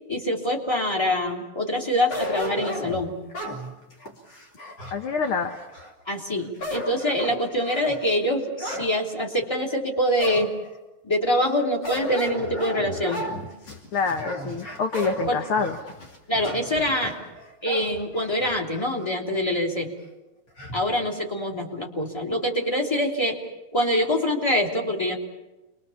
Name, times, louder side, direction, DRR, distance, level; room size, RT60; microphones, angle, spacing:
voice 1, 0.1-3.2 6.1-10.5 11.0-13.3 15.3-15.4 16.3-17.2 17.6-19.9 20.7-23.4 23.7-25.2, left 1 dB, 10° left, 1 dB, 2.9 m, -25 dB
sound 1, 2.1-5.9 6.4-8.9 9.4-9.5 10.2-10.8 11.8-18.9 19.3-19.4 20.6-20.9, equal, 35° left, 3.4 m, -34 dB
voice 2, 4.9-5.6 13.9-15.8, left 5 dB, 55° left, 6 dB, 1.7 m, -26 dB
29.0 x 23.0 x 7.2 m, 1.1 s
omnidirectional pair, 3.4 m